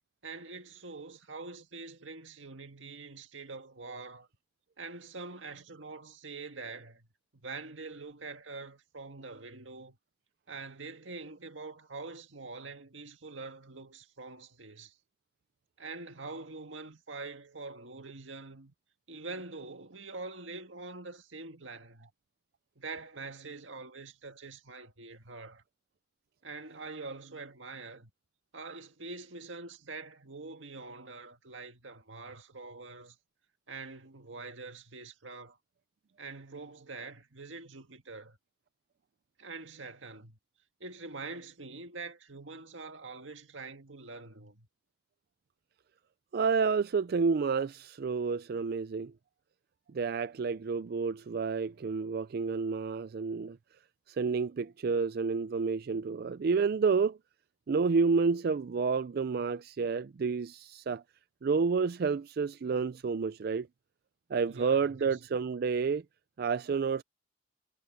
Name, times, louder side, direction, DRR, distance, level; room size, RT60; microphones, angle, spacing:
voice 1, 0.2-4.3 4.8-7.1 7.3-10.0 10.5-15.0 15.8-18.7 19.1-22.1 22.8-25.6 26.4-28.1 28.5-33.2 33.7-35.6 36.2-38.4 39.4-40.4 40.8-44.7 64.5-65.2, right 3 dB, 90° right, 1.9 m, -45 dB
voice 2, 46.3-49.1 49.9-53.6 54.1-57.2 57.7-61.0 61.4-63.7 64.3-66.0 66.4-67.0, right 5 dB, 55° right, 0.4 m, -29 dB
head